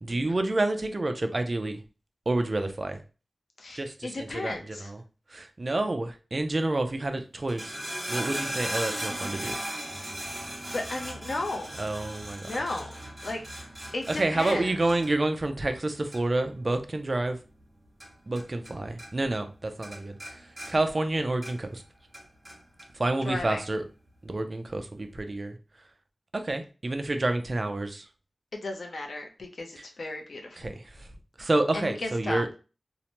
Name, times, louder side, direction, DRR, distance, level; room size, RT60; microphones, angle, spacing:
voice 1, 0.0-1.8 2.3-3.0 3.8-4.5 4.8-5.0 5.3-7.8 8.1-9.6 11.8-12.6 14.1-17.4 18.3-20.4 20.7-21.8 22.9-23.8 24.2-25.6 26.3-28.0 30.6-31.1 31.4-32.5, right 2 dB, 45° right, 7 dB, 0.4 m, -29 dB
voice 2, 3.6-4.9 10.7-11.8 12.4-12.9 13.2-13.4 13.9-14.7 23.2-23.6 28.5-30.6 31.7-32.4, left 2 dB, 75° left, 3 dB, 0.6 m, -34 dB
sound 1, 7.4-18.7 19.0-19.6 19.8-21.8 22.1-22.9 23.6-23.7, right 1 dB, 25° right, 1.0 m, -38 dB
2.7 x 2.1 x 2.9 m, 0.33 s
wide cardioid pair, 70°, 0 cm